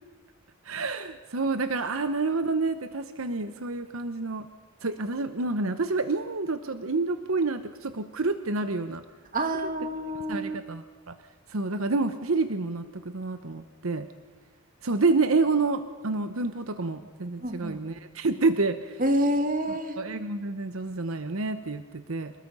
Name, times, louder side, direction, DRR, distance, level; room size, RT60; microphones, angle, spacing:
voice 1, 0.6-4.5 4.8-9.0 10.3-11.1 11.5-14.1 14.8-19.0 20.0-22.3, right 3 dB, 75° right, 9 dB, 1.0 m, -28 dB
voice 2, 9.3-10.6 17.4-17.8 19.0-20.0, right 1 dB, 40° right, 6 dB, 1.9 m, -27 dB
27.5 x 20.0 x 5.5 m, 1.3 s
head